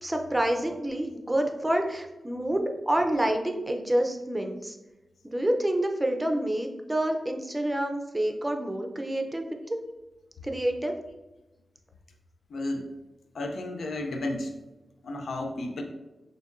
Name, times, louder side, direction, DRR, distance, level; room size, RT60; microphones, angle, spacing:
voice 1, 0.0-4.8 5.2-9.8 10.4-10.9, right 1 dB, 15° right, 4 dB, 0.5 m, -28 dB
voice 2, 12.5-12.9 13.3-14.5 15.0-15.8, left 2 dB, 75° left, 4 dB, 0.4 m, -32 dB
6.3 x 2.6 x 2.5 m, 1.1 s
wide cardioid pair, 85°, 0 cm